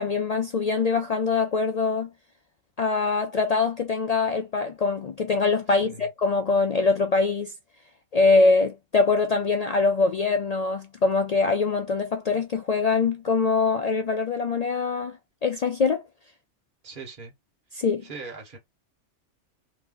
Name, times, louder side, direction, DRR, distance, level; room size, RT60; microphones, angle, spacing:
voice 1, 0.0-2.1 2.8-7.5 8.1-16.0 17.7-18.0, left 4 dB, 75° left, 0.3 m, -23 dB
voice 2, 5.7-6.1 16.8-17.3 18.0-18.6, right 4 dB, 45° right, 1.5 m, -40 dB
3.1 x 2.7 x 3.8 m
omnidirectional pair, 1.3 m